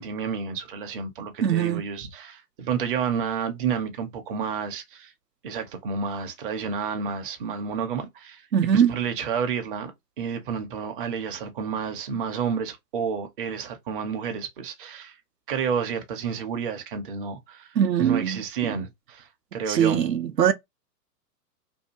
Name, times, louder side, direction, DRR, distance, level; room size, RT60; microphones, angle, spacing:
voice 1, 0.0-5.1 5.4-8.4 8.7-9.9 10.2-15.1 15.5-17.7 18.0-20.0, right 6 dB, 35° right, 0.6 m, -30 dB
voice 2, 1.4-1.8 8.5-9.0 17.8-18.4 19.7-20.5, right 8 dB, 85° right, 0.6 m, -21 dB
2.7 x 2.3 x 2.8 m
figure-of-eight pair, 110°, 48 cm